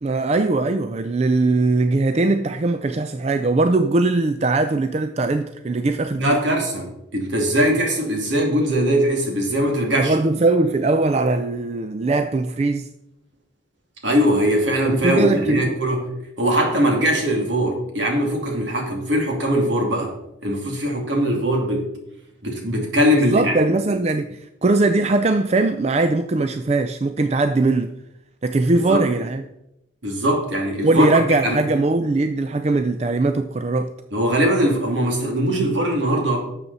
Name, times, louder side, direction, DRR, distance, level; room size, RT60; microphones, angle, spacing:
voice 1, 0.0-6.4 10.0-12.9 14.8-15.8 23.2-28.0 28.4-29.4 30.8-33.9, right 2 dB, 35° right, 0.4 m, -20 dB
voice 2, 6.2-10.1 14.0-16.0 16.4-20.1 20.4-21.9 22.4-23.7 28.7-29.1 30.0-31.6 34.1-36.4, equal, 70° right, 2.6 m, -21 dB
12.0 x 7.3 x 4.1 m
head